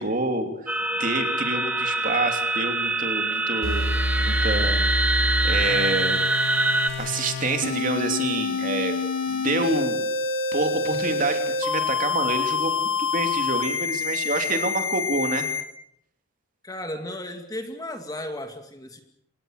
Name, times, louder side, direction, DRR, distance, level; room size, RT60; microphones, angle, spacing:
voice 1, 0.0-6.2 7.0-9.0 9.3-10.0 10.5-15.5, right 2 dB, 40° right, 5 dB, 3.0 m, -28 dB
sound 1, 0.7-6.9, right 2 dB, 5° right, 1.7 m, -24 dB
sound 2, 3.6-15.6, left 3 dB, 65° left, 3.8 m, -27 dB
voice 2, 16.6-19.0, left 1 dB, 15° left, 6 dB, 2.2 m, -34 dB
27.5 x 18.0 x 6.7 m, 0.73 s
head